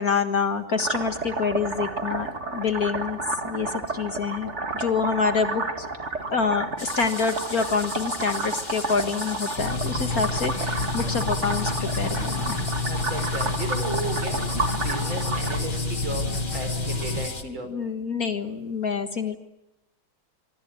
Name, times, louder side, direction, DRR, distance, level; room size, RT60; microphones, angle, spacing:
voice 1, 0.0-3.2 3.4-5.9 6.3-12.6 17.4-19.4, left 5 dB, 50° left, 8 dB, 2.0 m, -27 dB
sound 1, 0.8-15.6, right 3 dB, 35° right, 2.4 m, -31 dB
sound 2, 6.8-17.4, left 3 dB, 25° left, 1.9 m, -36 dB
sound 3, 9.6-17.3, left 3 dB, 85° left, 5.7 m, -29 dB
voice 2, 12.9-16.2 16.5-17.7, right 2 dB, 75° right, 7 dB, 5.8 m, -34 dB
26.0 x 24.5 x 9.1 m, 0.90 s
omnidirectional pair, 2.2 m